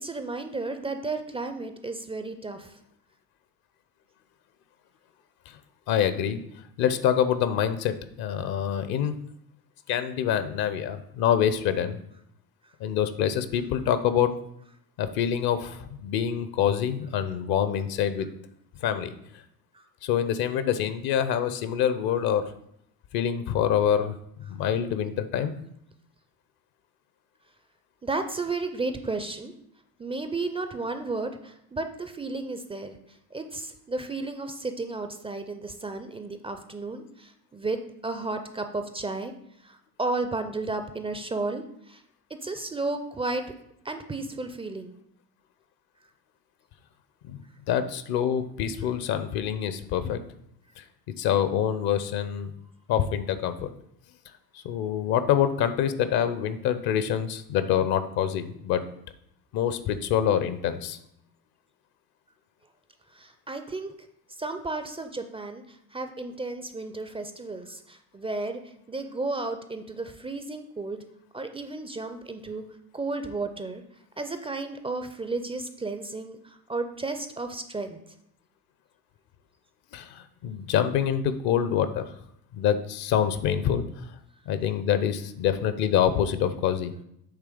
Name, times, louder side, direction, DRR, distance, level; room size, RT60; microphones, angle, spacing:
voice 1, 0.0-2.8 19.7-19.8 28.0-29.5 30.0-33.0 33.3-37.8 38.0-39.3 39.6-42.0 42.4-43.4 43.8-44.9 63.1-63.9 64.4-71.0 71.3-72.6 72.9-73.8 74.2-78.0, right 3 dB, 15° right, 7 dB, 0.4 m, -33 dB
voice 2, 5.9-6.4 6.8-9.2 9.9-12.0 12.8-14.3 15.0-18.3 18.8-19.1 20.0-22.4 23.1-24.2 24.5-25.5 47.2-47.4 47.7-50.2 50.8-50.9 51.2-52.5 52.9-53.7 54.5-58.8 59.5-61.0 79.9-82.1 82.5-84.1 84.5-86.9, left 9 dB, 50° left, 11 dB, 0.7 m, -26 dB
8.2 x 3.3 x 5.1 m, 0.74 s
hypercardioid pair, 65°, 47 cm